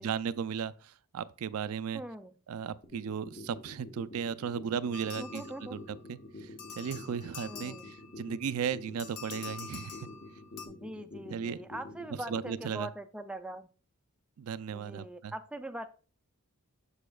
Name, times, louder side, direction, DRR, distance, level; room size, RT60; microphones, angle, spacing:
voice 1, 0.0-2.0 2.5-5.8 6.1-6.5 6.8-10.1 11.3-11.6 12.3-12.9 14.4-15.3, right 7 dB, 75° right, 0.4 m, -36 dB
voice 2, 1.9-2.3 5.1-5.8 7.4-7.9 10.7-13.7 14.7-15.9, right 1 dB, 5° right, 0.3 m, -42 dB
sound 1, 2.8-12.8, left 2 dB, 45° left, 1.1 m, -47 dB
sound 2, 4.9-6.1 6.6-8.3 9.0-10.7, left 6 dB, 80° left, 1.1 m, -46 dB
6.9 x 6.8 x 2.3 m
head